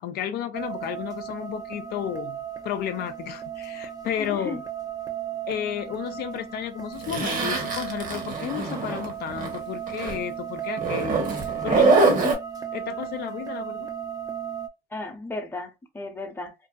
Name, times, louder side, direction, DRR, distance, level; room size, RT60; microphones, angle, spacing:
voice 1, 0.0-2.4 2.6-4.6 5.5-12.4 12.7-13.9, left 10 dB, 70° left, 0.4 m, -32 dB
sound 1, 0.5-14.7, right 9 dB, 20° right, 0.5 m, -35 dB
voice 2, 4.2-4.6 14.9-16.5, left 2 dB, 15° left, 0.7 m, -35 dB
Zipper (clothing), 7.0-9.6 9.9-10.2 10.8-12.3, right 3 dB, 55° right, 1.1 m, -24 dB
2.6 x 2.5 x 2.3 m
cardioid pair, 110°, 17 cm